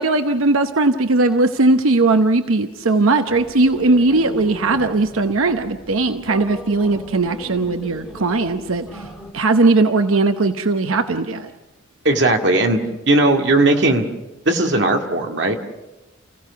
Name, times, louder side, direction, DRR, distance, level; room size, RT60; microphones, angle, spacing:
voice 1, 0.0-9.0 9.3-11.5, right 3 dB, 90° right, 8 dB, 0.9 m, -18 dB
sound 1, 3.3-9.3, equal, 5° right, 3.2 m, -37 dB
voice 2, 12.0-12.8 13.1-14.0 14.5-15.6, right 2 dB, 55° right, 3 dB, 2.1 m, -17 dB
29.5 x 16.0 x 7.0 m, 1.1 s
head